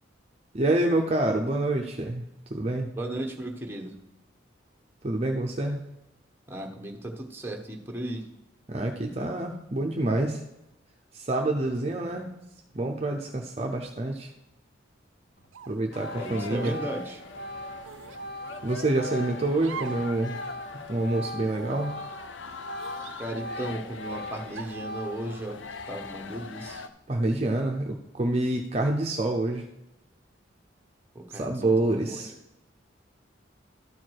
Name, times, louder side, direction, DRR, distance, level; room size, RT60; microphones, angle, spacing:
voice 1, 0.5-2.2 2.5-2.9 5.0-5.8 8.7-10.4 11.1-12.3 12.7-14.3 15.7-16.8 18.6-20.4 20.9-21.9 27.1-29.7 31.3-32.3, right 2 dB, 30° right, 2 dB, 0.6 m, -27 dB
voice 2, 3.0-4.0 6.5-8.3 16.1-17.2 23.2-25.6 25.9-26.9 31.1-32.3, right 1 dB, 10° right, 1 dB, 0.9 m, -35 dB
Organ, 15.4-15.6 15.9-22.3 22.6-25.5, equal, 50° left, 1.3 m, -40 dB
sound 1, 15.5-15.9 16.6-16.8 17.8-18.3 19.6-20.1 20.5-20.6 21.4-21.9 22.8-23.7 24.5-24.9, right 7 dB, 85° right, 0.5 m, -43 dB
sound 2, 15.9-26.9, left 4 dB, 75° left, 0.6 m, -42 dB
12.5 x 4.7 x 4.6 m, 0.89 s
head